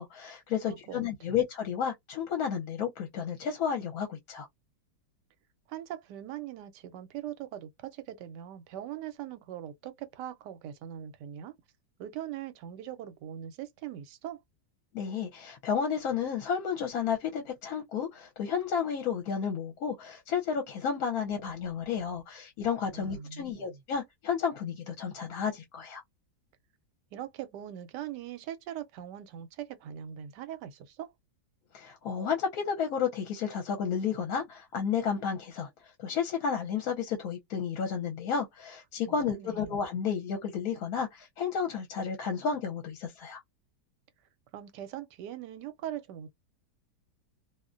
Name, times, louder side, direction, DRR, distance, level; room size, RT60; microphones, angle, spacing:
voice 1, 0.0-4.5 14.9-26.0 31.7-43.4, left 7 dB, 65° left, 1.0 m, -32 dB
voice 2, 0.7-1.4 5.7-11.5 12.0-14.4 22.9-23.8 27.1-31.1 39.1-39.7 44.5-46.4, right 11 dB, 85° right, 1.2 m, -41 dB
2.7 x 2.1 x 2.4 m
omnidirectional pair, 1.8 m